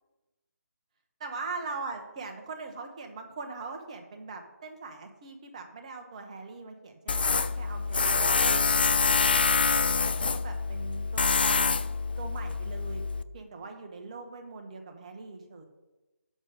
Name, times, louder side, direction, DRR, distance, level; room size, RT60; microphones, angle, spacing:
voice 1, 1.2-9.7 10.2-11.7 12.2-13.0 13.3-15.6, right 4 dB, 25° right, 5 dB, 1.1 m, -41 dB
Tools, 7.1-13.2, left 4 dB, 35° left, 0.4 m, -26 dB
7.9 x 6.5 x 6.5 m, 1.1 s
figure-of-eight pair, 155°, 9 cm